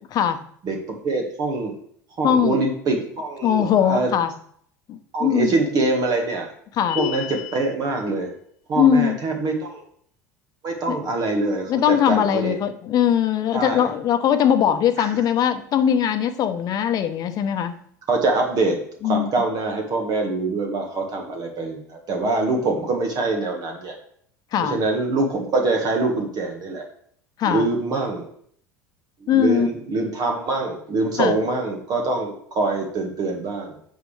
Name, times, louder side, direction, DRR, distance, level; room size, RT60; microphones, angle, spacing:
voice 1, 0.6-1.8 2.2-4.1 5.1-6.5 6.9-8.3 8.7-9.8 10.6-12.6 13.5-13.9 15.0-15.1 18.1-18.8 19.0-23.9 24.6-26.8 27.4-28.3 29.2-33.8, right 3 dB, 45° right, 2 dB, 1.6 m, -24 dB
voice 2, 2.2-2.6 3.4-4.3 4.9-5.5 6.8-7.0 8.8-9.2 10.9-11.0 11.7-17.7 19.0-19.3 24.5-24.8 27.4-27.7 29.3-29.7 31.2-31.3, left 9 dB, 45° left, 9 dB, 0.9 m, -20 dB
sound 1, 6.9-7.7, left 13 dB, 75° left, 0.4 m, -29 dB
9.0 x 6.7 x 3.3 m, 0.64 s
figure-of-eight pair, 70°, 9 cm